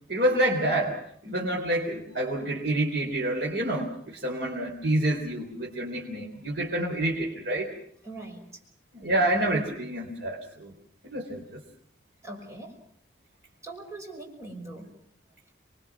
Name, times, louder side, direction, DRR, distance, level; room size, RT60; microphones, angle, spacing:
voice 1, 0.1-1.0 1.2-7.7 8.9-10.7 11.0-11.6, right 1 dB, 60° right, -2 dB, 3.9 m, -28 dB
voice 2, 8.0-8.6 12.2-12.8 13.6-14.9, right 2 dB, 15° right, 1 dB, 5.8 m, -41 dB
28.0 x 23.0 x 6.1 m, 0.65 s
head